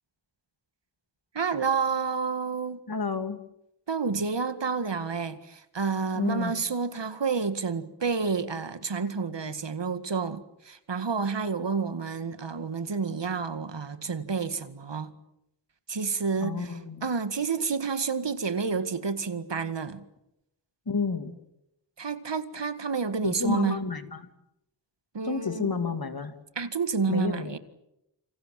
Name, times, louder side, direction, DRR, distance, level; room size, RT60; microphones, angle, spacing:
voice 1, 1.3-2.8 3.9-15.1 15.9-20.0 22.0-23.8 25.1-25.7 26.6-27.6, right 5 dB, 75° right, 2.0 m, -29 dB
voice 2, 2.9-3.4 6.1-6.6 16.4-17.1 20.9-21.3 23.2-24.3 25.2-26.3 27.1-27.5, left 4 dB, 55° left, 2.7 m, -30 dB
28.5 x 26.5 x 7.6 m
wide cardioid pair, 60°, 43 cm